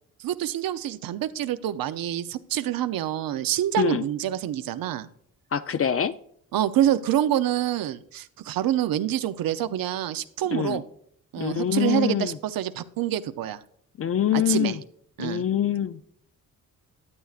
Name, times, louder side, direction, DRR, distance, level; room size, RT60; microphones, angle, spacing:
voice 1, 0.2-5.1 6.5-10.8 11.3-13.6 14.3-14.8 15.2-15.4, right 12 dB, 75° right, 12 dB, 0.6 m, -26 dB
voice 2, 5.5-6.1 10.5-10.8 11.4-12.4 14.0-14.8 15.2-16.0, left 9 dB, 40° left, 11 dB, 0.4 m, -25 dB
12.5 x 8.3 x 2.4 m, 0.66 s
cardioid pair, 95°, 35 cm